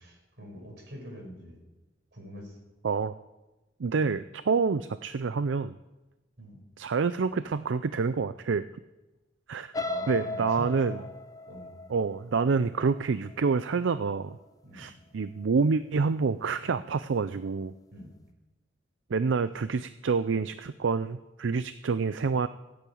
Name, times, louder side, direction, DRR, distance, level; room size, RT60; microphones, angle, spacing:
voice 1, 0.0-1.6 2.1-2.6 6.4-6.6 9.8-11.0 11.5-11.7 14.6-14.9 17.9-18.1, equal, 65° right, 1 dB, 5.1 m, -43 dB
voice 2, 3.8-5.7 6.8-8.6 9.5-9.7 10.1-11.0 11.9-14.4 14.7-17.7 19.1-22.5, right 5 dB, 85° right, 13 dB, 0.5 m, -27 dB
sound 1, 9.7-13.7 14.2-14.5 14.8-14.9, left 3 dB, 20° left, 0.7 m, -37 dB
16.0 x 8.8 x 8.6 m, 1.1 s
head